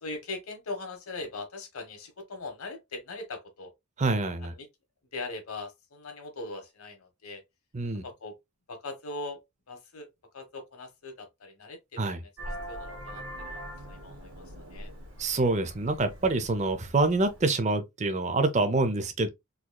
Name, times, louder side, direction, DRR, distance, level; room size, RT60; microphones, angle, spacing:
voice 1, 0.0-3.7 4.4-4.7 5.1-7.4 8.0-8.3 8.7-9.4 9.7-10.1 10.3-13.6 13.9-14.4 14.7-14.9, left 3 dB, 90° left, 1.2 m, -40 dB
voice 2, 4.0-4.5 7.7-8.0 12.0-12.2 15.2-19.3, right 2 dB, 35° right, 0.5 m, -26 dB
Vehicle horn car horn honking, 12.4-17.4, equal, 75° right, 1.5 m, -42 dB
4.0 x 3.0 x 2.2 m
head